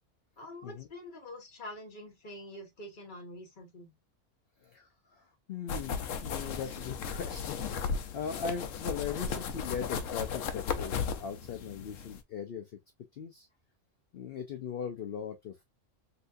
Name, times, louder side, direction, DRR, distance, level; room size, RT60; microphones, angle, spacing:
voice 1, 0.4-3.9, left 1 dB, 40° left, 1.1 m, -46 dB
voice 2, 4.6-12.8 13.1-13.5 14.1-15.6, left 7 dB, 60° left, 0.7 m, -39 dB
sound 1, 5.7-12.2, left 6 dB, 75° left, 1.0 m, -36 dB
3.4 x 2.8 x 2.5 m
omnidirectional pair, 1.4 m